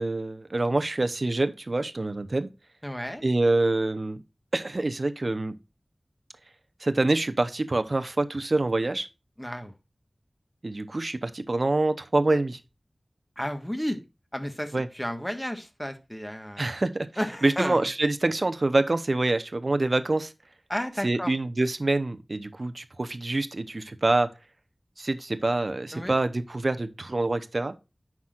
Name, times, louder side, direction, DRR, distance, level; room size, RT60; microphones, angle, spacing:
voice 1, 0.0-2.5 3.2-4.2 4.5-5.6 6.8-9.1 10.6-12.6 14.7-14.9 16.6-17.1 17.4-20.3 21.0-24.3 25.0-27.7, right 2 dB, 60° right, 0.8 m, -26 dB
voice 2, 2.8-3.2 9.4-9.7 13.4-14.0 14.3-16.7 17.2-17.9 20.7-21.3 25.9-26.2, equal, 10° left, 1.5 m, -32 dB
9.6 x 6.0 x 2.5 m
wide cardioid pair, 40°, 0 cm